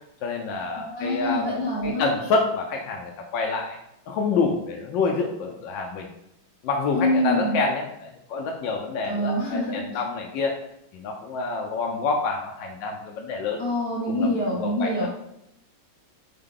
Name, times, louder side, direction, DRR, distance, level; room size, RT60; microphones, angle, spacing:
voice 1, 0.2-1.5 1.8-3.8 4.1-6.1 6.6-10.5 10.9-13.6 14.1-15.1, left 4 dB, 75° left, 1 dB, 1.2 m, -27 dB
voice 2, 0.8-2.1 6.9-7.6 9.1-9.7 13.6-15.1, left 1 dB, 45° left, -5 dB, 0.8 m, -25 dB
3.7 x 3.6 x 3.7 m, 0.79 s
omnidirectional pair, 2.1 m